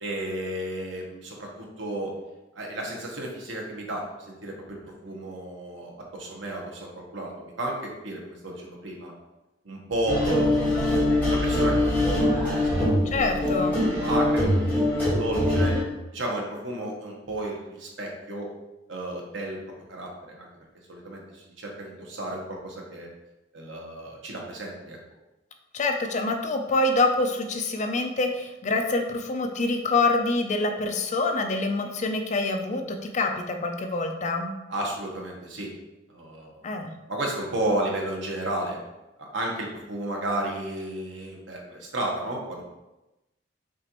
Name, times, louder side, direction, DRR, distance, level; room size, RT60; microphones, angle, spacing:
voice 1, 0.0-2.1 2.5-9.1 9.6-10.9 11.3-12.9 13.1-13.3 13.5-14.8 15.2-15.8 16.1-18.5 18.9-19.6 19.9-20.5 20.9-23.1 23.5-25.0 34.7-35.7 36.1-36.5 37.1-38.8 39.2-42.6, right 1 dB, 80° right, -1 dB, 1.0 m, -32 dB
sound 1, 10.1-15.8, left 1 dB, 10° left, 1.5 m, -23 dB
voice 2, 13.0-13.9 25.7-34.5 36.6-36.9, left 2 dB, 40° left, 5 dB, 0.4 m, -26 dB
6.2 x 2.5 x 2.9 m, 1.0 s
head